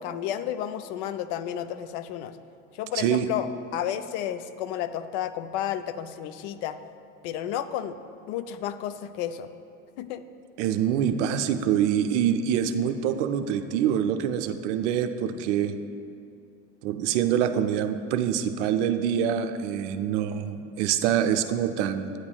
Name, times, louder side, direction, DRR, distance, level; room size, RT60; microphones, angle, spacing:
voice 1, 0.0-2.4 2.7-6.8 7.2-8.0 8.3-9.5 10.0-10.2, left 10 dB, 65° left, 12 dB, 0.5 m, -32 dB
voice 2, 3.0-3.3 10.6-15.7 16.8-22.1, right 9 dB, 70° right, 8 dB, 0.5 m, -25 dB
9.4 x 8.5 x 2.3 m, 2.5 s
hypercardioid pair, 80°, 36 cm